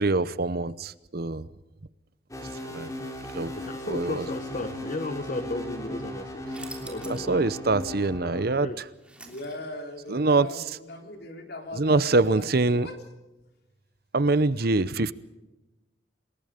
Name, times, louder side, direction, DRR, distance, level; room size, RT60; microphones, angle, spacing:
voice 1, 0.0-1.5 2.7-2.9 3.3-3.5 3.9-4.3 7.1-8.9 10.1-10.6 11.8-12.9 14.1-15.1, right 3 dB, 50° right, 16 dB, 0.8 m, -24 dB
sound 1, 2.3-8.5, left 1 dB, 15° left, 3.7 m, -36 dB
voice 2, 3.5-6.4 6.8-7.5 8.6-8.8, left 2 dB, 40° left, 10 dB, 1.0 m, -34 dB
sound 2, 6.5-7.4 7.8-7.9 8.6-9.9, right 2 dB, 5° right, 3.2 m, -45 dB
voice 3, 9.2-13.0, left 1 dB, 55° left, 4 dB, 3.8 m, -40 dB
28.0 x 20.0 x 5.1 m, 1.0 s
head